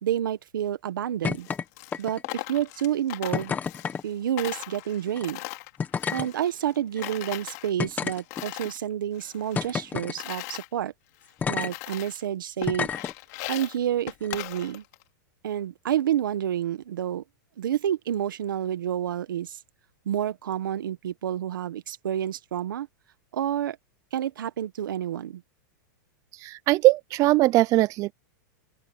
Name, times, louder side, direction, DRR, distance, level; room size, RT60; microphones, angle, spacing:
voice 1, 0.0-1.5 2.0-3.6 4.0-5.4 6.1-10.9 11.5-12.9 13.5-14.8 15.4-17.2 17.6-19.6 20.1-22.9 23.3-23.8 24.1-25.4, right 10 dB, 85° right, 1.6 m, -29 dB
sound 1, 1.2-1.6 1.9-2.4 3.3-4.0 5.1-5.2 5.8-6.3 7.0-7.1 7.8-8.7 9.5-10.2 11.4-11.7 12.6-13.1 14.2-14.3, left 6 dB, 15° left, 1.6 m, -30 dB
Coin (dropping), 1.3-4.1 4.4-6.8 7.0-8.8 9.1-10.7 11.2-11.3 11.6-12.3 12.6-15.0, left 23 dB, 50° left, 3.1 m, -39 dB
voice 2, 26.3-28.1, right 18 dB, 30° right, 0.6 m, -21 dB
open air
supercardioid pair, 145°, 11 cm